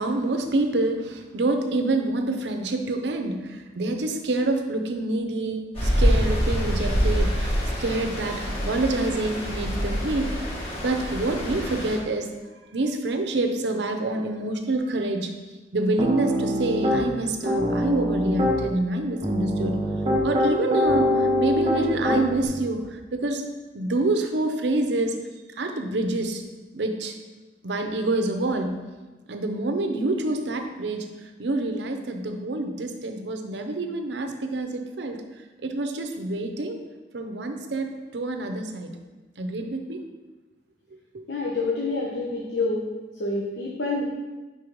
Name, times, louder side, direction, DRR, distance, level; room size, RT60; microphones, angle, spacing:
voice 1, 0.0-7.5 7.8-10.5 10.8-12.3 12.7-15.3 15.7-19.9 20.2-23.4 23.7-25.2 25.6-26.4 26.7-27.2 27.6-28.8 29.3-31.1 31.4-35.2 35.6-36.8 37.1-38.9 39.4-40.0 41.1-41.2, right 2 dB, 75° right, 6 dB, 0.6 m, -27 dB
Stream, 5.7-12.0, equal, 35° left, 1.4 m, -25 dB
Piano, 16.0-17.0 17.4-18.6 19.2-22.5, left 1 dB, 30° right, 0.7 m, -24 dB
voice 2, 41.3-42.8 43.2-44.0, left 3 dB, 75° left, -3 dB, 0.8 m, -27 dB
4.6 x 4.3 x 5.1 m, 1.2 s
head